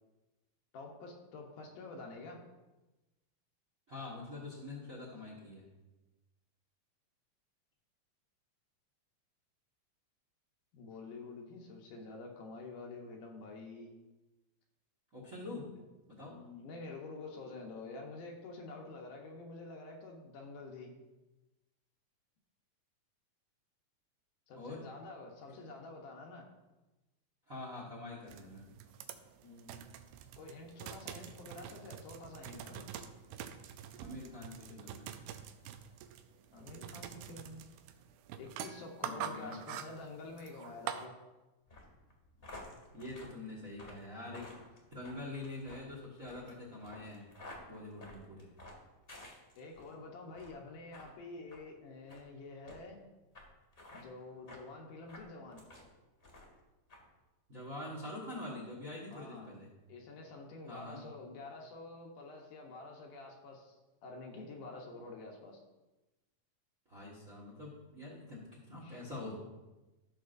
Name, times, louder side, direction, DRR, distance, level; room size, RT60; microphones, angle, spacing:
voice 1, 0.7-2.4 10.7-14.0 16.3-20.9 24.5-26.5 29.4-29.9 30.4-32.9 36.5-37.6 38.4-41.1 49.6-53.0 53.9-55.6 59.1-59.5 59.9-65.6 68.8-69.0, left 3 dB, 70° left, 1 dB, 2.4 m, -48 dB
voice 2, 3.9-5.6 15.1-15.7 16.1-16.4 24.5-24.8 27.5-28.6 33.9-35.1 39.0-39.6 42.9-44.6 44.9-47.3 47.7-48.5 57.5-59.7 60.7-61.0 66.9-69.3, left 2 dB, 40° right, -5 dB, 1.2 m, -45 dB
sound 1, 28.3-41.1, right 9 dB, 90° right, 2.4 m, -46 dB
sound 2, 41.7-49.9 50.3-50.6 50.9-51.1 51.5-51.6 52.1-52.2 52.7-52.8 53.3-53.5 53.7-54.0 54.5-54.6 55.1-55.9 56.2-56.6 56.9-57.0, left 2 dB, 25° left, 1.4 m, -52 dB
14.5 x 6.4 x 2.6 m, 1.1 s
omnidirectional pair, 4.1 m